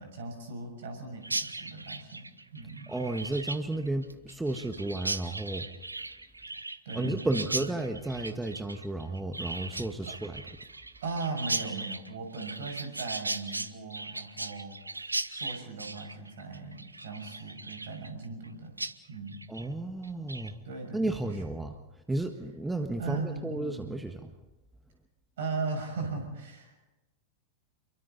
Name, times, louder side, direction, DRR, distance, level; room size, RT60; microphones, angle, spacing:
voice 1, 0.0-2.9 6.8-7.3 10.1-10.2 11.0-18.7 19.1-19.5 20.6-21.0 23.0-23.9 25.4-26.8, right 3 dB, 60° right, 4 dB, 6.4 m, -38 dB
Chirp tweet, 1.2-18.5 18.8-18.9 19.3-19.7 20.0-20.5, right 2 dB, 80° right, 0.9 m, -38 dB
voice 2, 2.9-5.7 6.9-10.4 19.5-20.6 20.9-21.8 22.1-24.3, right 2 dB, 5° right, 6 dB, 1.6 m, -33 dB
29.0 x 23.0 x 4.1 m, 1.0 s
figure-of-eight pair, 90°, 0 cm